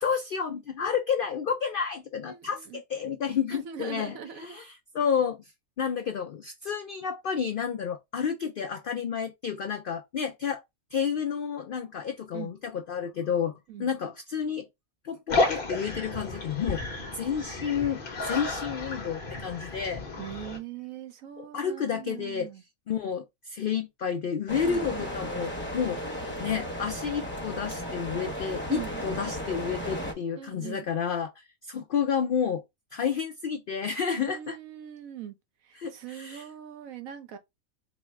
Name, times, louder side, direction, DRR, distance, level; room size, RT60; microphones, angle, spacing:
voice 1, 0.0-5.5 5.8-10.6 10.9-14.7 15.0-16.8 17.1-20.0 21.4-22.5 22.9-26.0 26.4-32.6 32.9-34.6 35.8-36.4, left 7 dB, 75° left, 0.5 m, -30 dB
voice 2, 2.2-2.8 3.5-4.6 12.3-12.5 13.7-13.9 20.2-22.6 24.7-25.1 28.7-29.1 30.0-30.9 34.2-35.3 35.6-37.4, right 9 dB, 75° right, 1.1 m, -41 dB
sound 1, 15.3-20.6, left 3 dB, 45° left, 1.0 m, -32 dB
sound 2, 24.5-30.1, equal, 10° left, 0.9 m, -35 dB
4.0 x 2.0 x 4.4 m
omnidirectional pair, 1.5 m